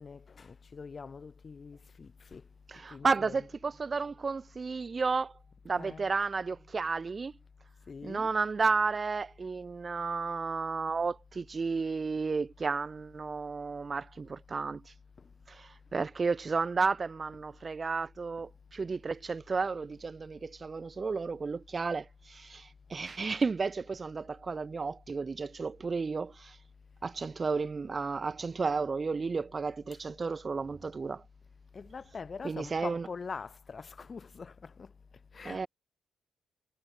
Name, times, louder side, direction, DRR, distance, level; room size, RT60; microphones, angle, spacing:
voice 1, 0.0-2.4 2.9-3.5 5.7-6.1 7.9-8.3 31.7-34.9 35.3-35.7, left 5 dB, 35° left, 1.3 m, -44 dB
voice 2, 2.7-5.3 5.6-7.3 8.0-14.9 15.5-26.6 27.0-31.2 32.4-33.1 35.4-35.7, right 4 dB, 30° right, 0.5 m, -32 dB
cardioid pair, 90°, 0 cm